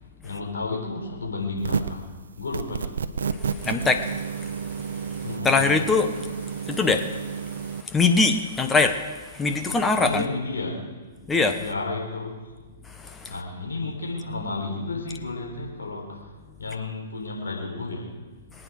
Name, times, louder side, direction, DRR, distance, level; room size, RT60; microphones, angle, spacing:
voice 1, 0.2-2.1 2.4-2.9 5.2-5.6 10.0-10.8 11.6-12.5 13.3-16.3 16.6-18.1, left 3 dB, 80° left, -2 dB, 4.1 m, -32 dB
sound 1, 1.6-2.1 2.5-7.8, right 6 dB, 75° right, 0.9 m, -31 dB
voice 2, 3.6-4.5 5.4-6.3 6.7-7.1 7.9-9.0 9.3-10.2 11.3-11.6 13.0-13.3, left 4 dB, 10° left, 6 dB, 1.1 m, -22 dB
23.5 x 9.2 x 6.5 m, 1.4 s
hypercardioid pair, 120°, 0 cm